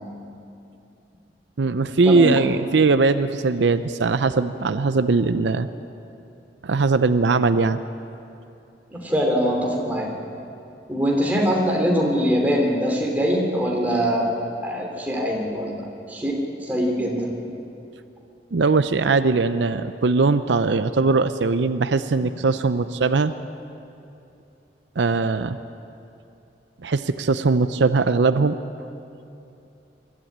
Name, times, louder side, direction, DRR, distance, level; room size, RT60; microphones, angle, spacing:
voice 1, 1.6-5.7 6.6-7.8 18.5-23.3 25.0-25.6 26.8-28.6, right 3 dB, 80° right, 11 dB, 0.6 m, -20 dB
voice 2, 8.9-10.1 10.9-14.4 14.6-17.3, equal, 10° right, -1 dB, 3.1 m, -23 dB
22.0 x 14.0 x 8.8 m, 2.7 s
head